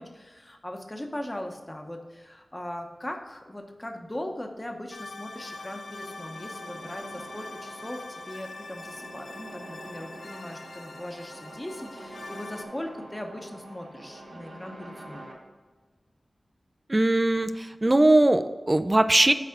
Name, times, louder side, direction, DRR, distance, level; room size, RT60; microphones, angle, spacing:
voice 1, 0.0-15.2, left 1 dB, 20° left, 3 dB, 0.9 m, -39 dB
sound 1, 4.9-12.7, left 3 dB, 70° left, 0.5 m, -43 dB
sound 2, 5.3-15.3, right 1 dB, 60° right, 1.8 m, -46 dB
voice 2, 16.9-19.3, right 1 dB, 30° right, 10 dB, 0.4 m, -20 dB
5.9 x 4.1 x 6.0 m, 1.3 s
cardioid pair, 50°, 0 cm